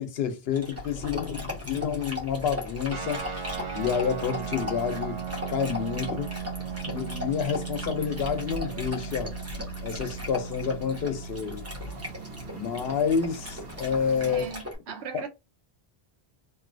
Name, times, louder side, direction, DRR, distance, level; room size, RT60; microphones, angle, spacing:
voice 1, 0.0-3.2 3.7-5.2 5.5-6.3 6.9-9.3 9.8-11.6 12.5-14.4 15.1-15.2, left 7 dB, 70° left, 0.9 m, -29 dB
Dog, 0.5-14.7, left 2 dB, 15° right, 0.9 m, -39 dB
sound 1, 0.7-14.5, equal, 65° right, 1.2 m, -43 dB
sound 2, 2.9-13.8, right 9 dB, 35° right, 0.6 m, -38 dB
voice 2, 14.2-15.3, right 6 dB, 85° right, 0.9 m, -38 dB
3.0 x 2.6 x 2.5 m
omnidirectional pair, 1.1 m